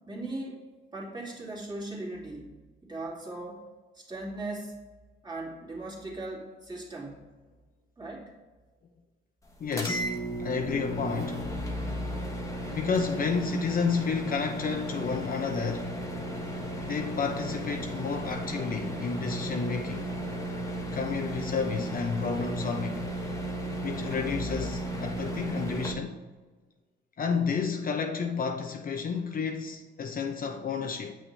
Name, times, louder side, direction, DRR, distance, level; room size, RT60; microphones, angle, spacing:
voice 1, 0.1-0.6 0.9-2.5 2.8-3.6 3.9-4.8 5.2-7.3 8.0-8.3, right 2 dB, 20° right, 2.4 m, -38 dB
voice 2, 9.6-10.1 10.4-11.4 12.7-15.9 16.9-20.1 20.9-23.0 23.8-26.1 27.2-31.1, left 5 dB, 45° left, 0.7 m, -31 dB
sound 1, 9.7-25.9, right 1 dB, 15° left, 1.2 m, -34 dB
7.9 x 6.2 x 3.3 m
cardioid pair, 90°, 20 cm